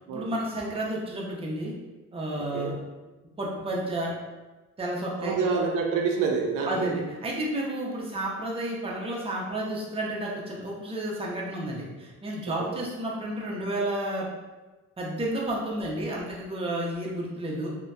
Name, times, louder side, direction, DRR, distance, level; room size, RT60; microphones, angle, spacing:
voice 1, 0.0-1.7 2.1-2.7 3.4-4.1 4.8-5.6 6.6-14.3 15.0-17.7, right 1 dB, 20° right, -3 dB, 0.5 m, -31 dB
voice 2, 5.2-6.9 12.6-12.8, right 5 dB, 80° right, 1 dB, 0.5 m, -27 dB
2.7 x 2.1 x 2.2 m, 1.2 s
cardioid pair, 90°, 30 cm